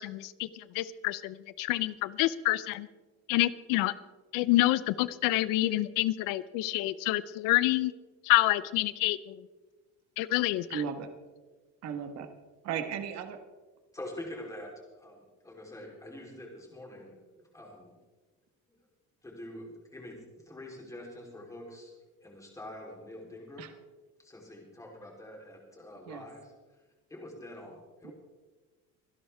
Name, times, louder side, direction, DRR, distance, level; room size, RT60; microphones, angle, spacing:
voice 1, 0.0-2.9 3.3-3.9 4.3-7.9 8.2-9.5 10.2-10.8, left 17 dB, 85° left, 17 dB, 0.7 m, -28 dB
voice 2, 10.7-11.1 11.8-12.3 12.6-13.4 23.6-23.7 26.1-26.2 28.0-28.1, right 7 dB, 55° right, 8 dB, 1.5 m, -35 dB
voice 3, 13.9-17.9 18.7-18.8 19.2-23.6 24.2-26.8 27.1-28.1, left 1 dB, 10° left, -1 dB, 3.6 m, -46 dB
25.5 x 11.0 x 3.5 m, 1.3 s
cardioid pair, 155°, 32 cm